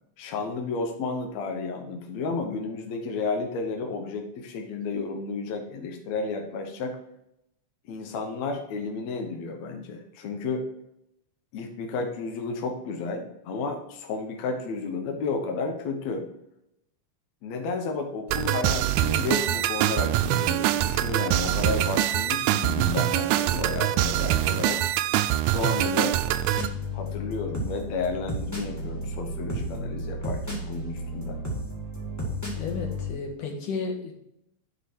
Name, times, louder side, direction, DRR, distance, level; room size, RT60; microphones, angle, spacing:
voice 1, 0.2-7.0 7.9-10.7 11.5-16.2 17.4-24.8 25.4-26.2 26.9-31.4, left 4 dB, 70° left, 3 dB, 2.2 m, -32 dB
sound 1, 18.3-26.7, right 13 dB, 85° right, 2.0 m, -24 dB
sound 2, 26.4-33.1, equal, 10° left, 0.9 m, -33 dB
voice 2, 32.6-34.1, left 4 dB, 85° left, 1 dB, 3.0 m, -32 dB
10.0 x 5.3 x 4.5 m, 0.79 s
omnidirectional pair, 3.5 m